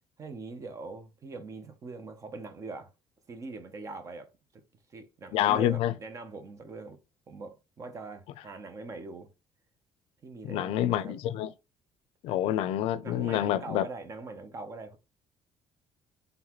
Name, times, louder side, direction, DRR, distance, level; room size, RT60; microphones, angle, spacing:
voice 1, 0.2-2.9 3.3-4.3 4.9-7.0 7.3-9.3 10.2-11.1 13.0-15.0, right 3 dB, 35° right, 0.7 m, -42 dB
voice 2, 5.3-5.9 10.5-11.5 12.2-13.8, left 12 dB, 85° left, 0.4 m, -27 dB
3.9 x 3.4 x 3.0 m
cardioid pair, 150°, 10 cm